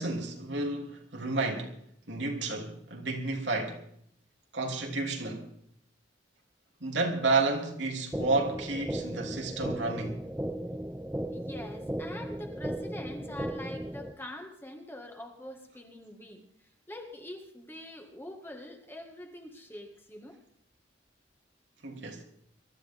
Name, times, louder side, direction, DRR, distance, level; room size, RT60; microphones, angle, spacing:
voice 1, 0.0-1.8 2.1-3.8 4.5-5.5 6.8-10.2 21.8-22.3, right 3 dB, 80° right, 3.1 m, -31 dB
sound 1, 8.1-14.1, right 1 dB, 10° right, 0.9 m, -36 dB
voice 2, 11.3-16.4 16.9-20.4, left 1 dB, 10° left, 2.0 m, -44 dB
23.0 x 13.5 x 3.7 m
head